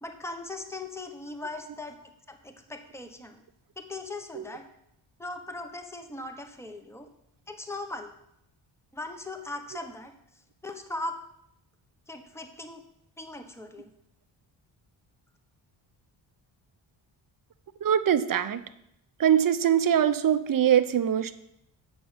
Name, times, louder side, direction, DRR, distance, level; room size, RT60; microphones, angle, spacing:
voice 1, 0.0-3.4 3.8-4.6 5.2-7.1 7.5-8.1 8.9-10.1 10.6-11.2 12.1-12.8 13.2-13.9, left 2 dB, 5° left, 6 dB, 1.2 m, -39 dB
voice 2, 17.8-18.6 19.2-21.3, right 9 dB, 45° right, 12 dB, 0.8 m, -23 dB
8.6 x 6.2 x 5.5 m, 0.78 s
cardioid pair, 65°, 49 cm